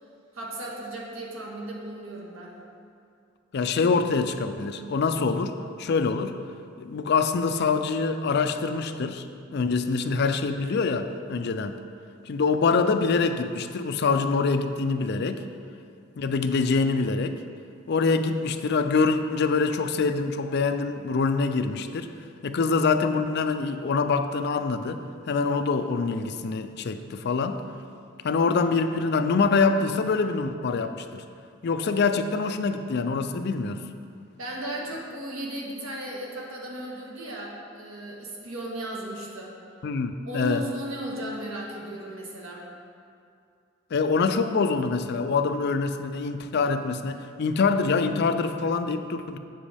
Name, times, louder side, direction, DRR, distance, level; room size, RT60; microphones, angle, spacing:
voice 1, 0.3-2.5 34.4-39.5 40.3-42.6, right 1 dB, 85° right, -2 dB, 1.5 m, -35 dB
voice 2, 3.5-6.4 6.8-9.2 9.5-11.8 12.3-15.4 16.2-17.4 17.9-22.1 22.4-27.6 28.2-31.2 31.6-33.8 39.8-40.7 43.9-49.4, left 4 dB, 55° left, 8 dB, 0.4 m, -25 dB
8.1 x 7.5 x 3.4 m, 2.4 s
head